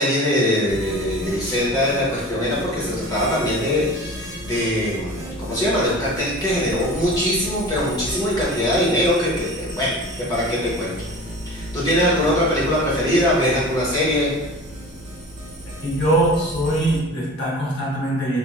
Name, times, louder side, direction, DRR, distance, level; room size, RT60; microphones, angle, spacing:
voice 1, 0.0-10.9 11.5-14.3, left 1 dB, 20° left, -7 dB, 0.8 m, -22 dB
sound 1, 0.7-17.0, equal, 20° right, 1.1 m, -33 dB
voice 2, 15.8-18.4, right 1 dB, 60° left, -4 dB, 0.8 m, -21 dB
2.9 x 2.5 x 2.4 m, 1.1 s
head